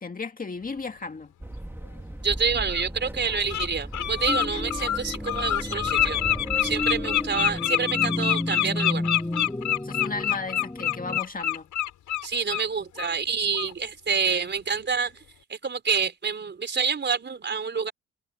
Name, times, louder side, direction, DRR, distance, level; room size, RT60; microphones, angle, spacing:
voice 1, 0.0-1.3 9.8-11.7, left 4 dB, 30° left, 2.1 m, -34 dB
sound 1, 1.4-7.6, right 1 dB, 5° right, 2.6 m, -37 dB
Bird, 1.9-2.0 2.7-2.8 3.3-3.7 3.9-12.7 13.0-13.2 13.5-13.7, left 12 dB, 75° left, 5.9 m, -26 dB
voice 2, 2.2-6.2 6.6-9.0 12.2-15.1 15.5-17.9, right 5 dB, 35° right, 4.0 m, -27 dB
sound 2, 4.3-11.2, left 1 dB, 10° left, 6.3 m, -32 dB
cardioid pair, 90°, 30 cm